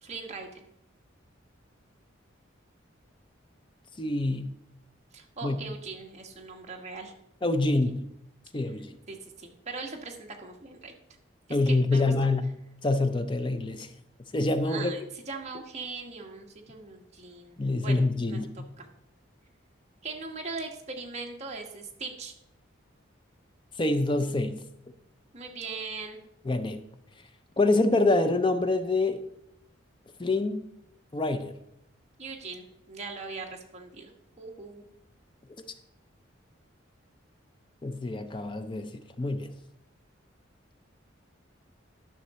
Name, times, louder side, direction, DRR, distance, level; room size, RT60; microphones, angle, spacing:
voice 1, 0.0-0.5 5.1-7.1 7.6-7.9 9.1-10.9 11.7-12.3 14.6-18.4 18.8-18.9 20.0-22.3 25.3-26.2 32.2-34.1 34.4-34.8, right 4 dB, 35° right, 1 dB, 1.3 m, -40 dB
voice 2, 4.0-4.5 5.4-5.6 7.4-8.0 8.5-9.0 11.5-12.5 12.8-13.9 14.3-14.9 17.6-18.7 23.8-24.6 26.5-26.8 27.6-29.2 30.2-30.6 31.1-31.5 37.8-38.9 39.2-39.5, left 2 dB, 25° left, 9 dB, 0.5 m, -26 dB
11.5 x 5.8 x 4.2 m, 0.81 s
head